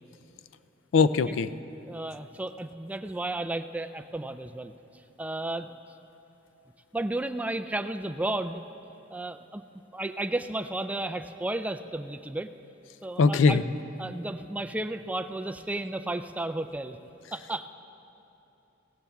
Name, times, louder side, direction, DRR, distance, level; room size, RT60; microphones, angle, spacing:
voice 1, 0.9-1.5 13.2-13.6, left 4 dB, 70° left, 13 dB, 0.4 m, -20 dB
voice 2, 1.8-4.7 5.2-5.8 6.9-8.6 9.1-9.6 9.9-12.5 13.0-13.6 14.0-17.0 17.3-17.7, right 2 dB, 10° right, 9 dB, 0.3 m, -33 dB
21.5 x 17.5 x 2.3 m, 2.9 s
head